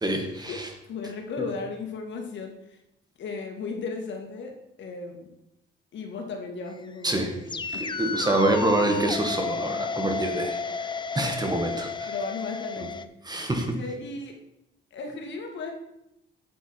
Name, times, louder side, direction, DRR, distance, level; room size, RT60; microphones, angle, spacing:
voice 1, 0.0-0.7 7.0-7.3 7.7-10.6 11.2-12.1 13.3-13.8, right 1 dB, 20° right, 4 dB, 1.8 m, -26 dB
voice 2, 0.8-2.8 3.2-5.3 5.9-7.6 12.1-13.1 13.7-14.4 14.9-15.7, left 4 dB, 65° left, 2 dB, 2.1 m, -35 dB
sound 1, 6.7-13.0, left 4 dB, 25° left, 0.5 m, -32 dB
8.4 x 8.0 x 4.7 m, 0.84 s
cardioid pair, 90°, 20 cm